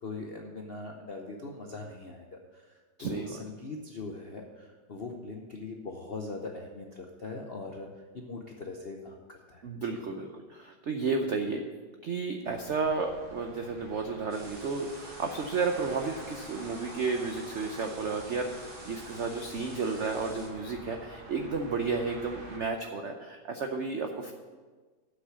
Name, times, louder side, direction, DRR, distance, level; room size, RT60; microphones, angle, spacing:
voice 1, 0.0-7.9 8.1-9.6, left 3 dB, 60° left, 1 dB, 0.6 m, -41 dB
voice 2, 3.0-3.3 9.6-11.6 12.0-24.3, right 4 dB, 75° right, 4 dB, 0.6 m, -32 dB
sound 1, 12.4-22.6, right 1 dB, 30° right, 1.4 m, -47 dB
sound 2, 14.3-20.5, right 1 dB, 50° right, 3.3 m, -50 dB
7.9 x 6.3 x 8.0 m, 1.4 s
omnidirectional pair, 2.1 m